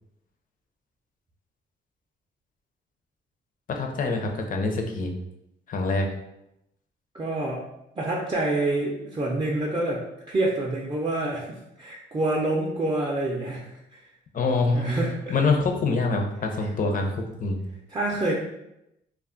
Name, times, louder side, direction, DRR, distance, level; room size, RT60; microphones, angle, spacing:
voice 1, 3.7-5.1 5.7-6.1 14.3-14.9 15.3-17.6, left 3 dB, 45° left, 3 dB, 0.5 m, -25 dB
voice 2, 7.1-7.6 8.0-14.0 14.7-15.3 17.9-18.3, right 2 dB, 25° right, -4 dB, 0.4 m, -27 dB
2.2 x 2.0 x 3.6 m, 0.87 s
cardioid pair, 90°, 20 cm